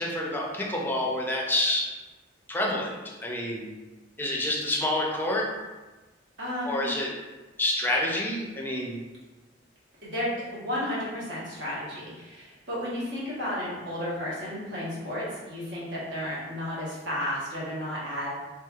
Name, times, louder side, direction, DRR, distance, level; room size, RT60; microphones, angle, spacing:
voice 1, 0.0-1.9 2.5-2.9 3.2-3.7 4.2-5.5 6.7-7.1 7.6-9.0, left 1 dB, 10° left, -2 dB, 0.5 m, -28 dB
voice 2, 6.4-6.9 10.0-18.3, left 1 dB, 70° right, -7 dB, 1.1 m, -33 dB
3.1 x 2.7 x 2.3 m, 1.2 s
head